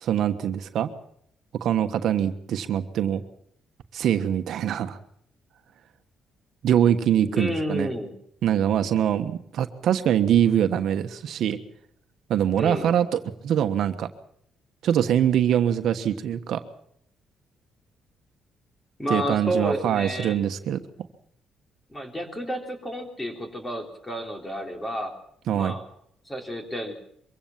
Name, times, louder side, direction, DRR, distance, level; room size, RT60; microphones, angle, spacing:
voice 1, 0.0-0.9 1.6-3.2 3.9-5.0 6.6-7.9 8.4-11.6 12.3-14.1 14.8-16.6 19.1-20.8 25.5-25.8, right 10 dB, 75° right, 8 dB, 1.3 m, -23 dB
voice 2, 7.3-8.1 12.5-12.9 19.0-20.4 21.9-25.1 25.5-25.8 26.3-26.9, equal, 15° left, 4 dB, 3.9 m, -30 dB
23.5 x 16.0 x 7.3 m, 0.69 s
cardioid pair, 90°, 0 cm